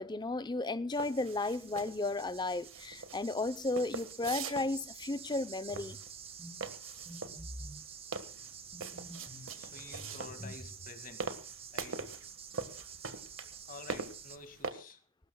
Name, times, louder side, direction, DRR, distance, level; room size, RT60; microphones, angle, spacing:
voice 1, 0.0-6.0 9.4-9.5, left 2 dB, 20° left, 0.7 m, -34 dB
sound 1, 0.9-14.4, right 7 dB, 30° right, 1.1 m, -50 dB
sound 2, 0.9-14.7, right 4 dB, 75° right, 1.6 m, -43 dB
sound 3, 5.7-6.0 6.4-6.6 7.1-7.8 8.7-9.5 9.9-10.9, equal, ahead, 7.9 m, -48 dB
voice 2, 9.6-11.2 11.7-12.0 13.7-15.0, left 3 dB, 45° left, 2.2 m, -50 dB
22.0 x 19.0 x 2.3 m
head